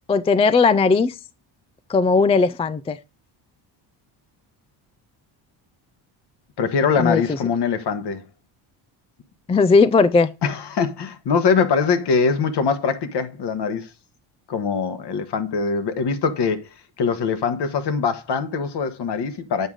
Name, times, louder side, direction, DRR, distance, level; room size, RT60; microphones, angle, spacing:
voice 1, 0.1-1.2 1.9-3.0 7.0-7.2 9.5-10.3, left 4 dB, 15° left, 0.3 m, -17 dB
voice 2, 6.6-8.2 10.4-13.9 14.5-16.7 17.0-19.7, left 5 dB, 55° left, 1.3 m, -22 dB
8.2 x 4.7 x 3.8 m
cardioid pair, 85°, 49 cm